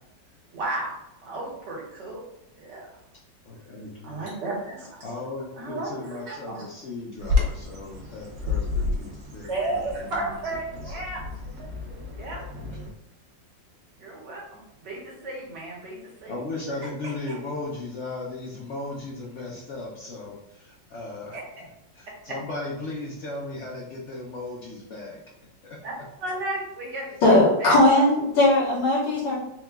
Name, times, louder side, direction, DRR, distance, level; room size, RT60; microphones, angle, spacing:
voice 1, 0.5-0.9 1.2-2.2 2.6-2.9 4.0-5.2 5.6-6.7 9.4-11.2 12.2-12.4 14.0-16.4 17.3-17.4 21.3-21.4 22.3-22.4 25.8-25.9 26.2-27.8, right 2 dB, 70° right, -4 dB, 1.8 m, -33 dB
voice 2, 3.4-4.3 5.0-10.4 10.7-11.0 12.6-12.9 16.3-25.2 25.6-26.1, left 2 dB, 65° left, -3 dB, 0.7 m, -37 dB
Bird vocalization bird call bird song, 7.2-12.9, left 3 dB, 85° right, 1.6 m, -30 dB
voice 3, 27.2-29.4, left 1 dB, 90° left, -9 dB, 2.0 m, -18 dB
4.7 x 2.3 x 3.4 m, 0.85 s
omnidirectional pair, 2.0 m